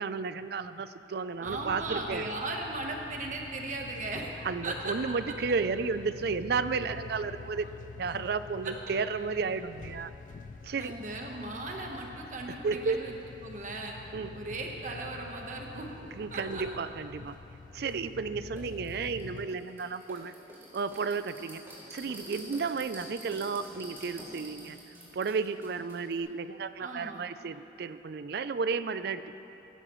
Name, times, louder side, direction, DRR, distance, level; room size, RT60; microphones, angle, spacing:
voice 1, 0.0-2.3 4.4-7.7 8.0-10.1 10.6-11.0 12.5-13.2 14.1-14.3 16.0-17.4 17.7-20.3 20.7-21.6 21.9-24.8 25.1-29.4, right 5 dB, 60° right, 13 dB, 0.4 m, -33 dB
sound 1, 1.4-19.5, left 4 dB, 45° left, 0.3 m, -47 dB
voice 2, 1.4-4.3 4.6-5.0 8.6-8.7 10.8-13.1 13.4-14.0 14.3-15.9 16.3-16.6 26.8-27.2, right 2 dB, 45° right, 1 dB, 1.1 m, -37 dB
sound 2, 17.9-18.0 18.6-26.2, right 1 dB, 15° right, 3.2 m, -47 dB
16.5 x 12.5 x 3.1 m, 3.0 s
head